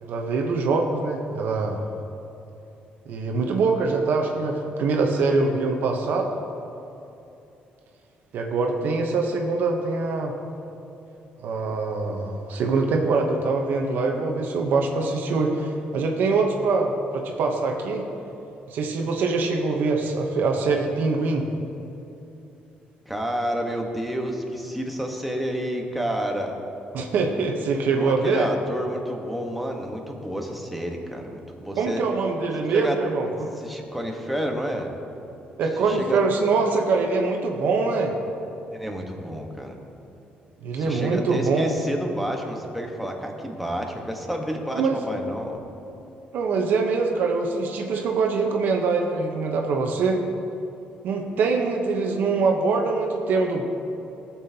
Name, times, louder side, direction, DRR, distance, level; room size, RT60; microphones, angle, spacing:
voice 1, 0.0-1.8 3.1-6.3 8.3-10.3 11.4-18.0 18.7-21.5 26.9-28.5 31.8-33.5 35.6-38.1 40.6-41.7 44.7-45.0 46.3-50.2 51.0-53.6, right 4 dB, 70° right, 2 dB, 0.9 m, -24 dB
voice 2, 23.0-26.6 27.9-32.0 32.7-33.0 33.3-34.9 35.9-36.2 38.7-39.8 40.7-45.6, equal, ahead, 1 dB, 1.2 m, -30 dB
15.5 x 7.2 x 2.8 m, 2.8 s
cardioid pair, 110°, 3 cm